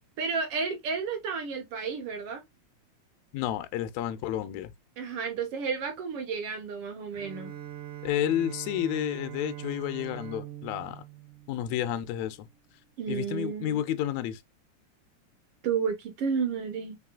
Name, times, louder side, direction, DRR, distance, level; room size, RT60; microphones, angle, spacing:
voice 1, 0.2-2.4 5.0-7.5 13.0-13.8 15.6-17.0, right 5 dB, 70° right, 1.4 m, -31 dB
voice 2, 3.3-4.7 8.0-11.0 11.5-12.5 13.1-14.4, left 11 dB, 80° left, 1.7 m, -31 dB
Bowed string instrument, 7.1-12.4, right 13 dB, 85° right, 2.7 m, -43 dB
5.4 x 3.1 x 2.3 m
omnidirectional pair, 3.3 m